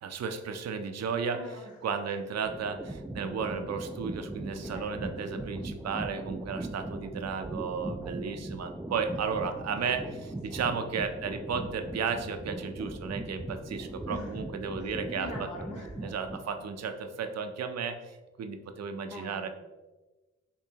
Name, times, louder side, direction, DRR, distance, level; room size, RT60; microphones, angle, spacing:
voice 1, 0.0-15.5 16.0-19.5, right 5 dB, 60° right, 7 dB, 0.6 m, -34 dB
voice 2, 1.3-1.7 4.6-5.2 9.3-10.1 10.5-10.6 14.1-14.4 14.8-16.1 19.1-19.5, left 1 dB, 80° left, -1 dB, 1.2 m, -44 dB
sound 1, 2.4-16.7, right 2 dB, 5° right, 0.3 m, -39 dB
6.9 x 2.6 x 2.8 m, 1.2 s
cardioid pair, 60°, 29 cm